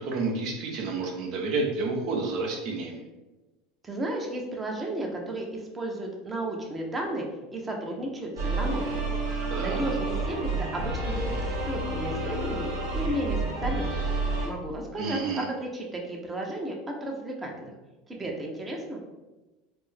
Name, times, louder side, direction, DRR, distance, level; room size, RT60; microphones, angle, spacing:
voice 1, 0.0-3.0 9.5-9.8 15.0-15.4, right 3 dB, 60° right, 1 dB, 0.8 m, -30 dB
voice 2, 3.8-7.2 7.5-9.0 9.6-13.9 14.4-15.2 15.6-16.7 17.0-17.7 18.1-19.0, right 1 dB, 20° right, 1 dB, 0.8 m, -33 dB
sound 1, 8.4-14.5, right 2 dB, 85° right, 1.2 m, -29 dB
4.3 x 2.1 x 3.4 m, 1.1 s
hypercardioid pair, 95°, 0 cm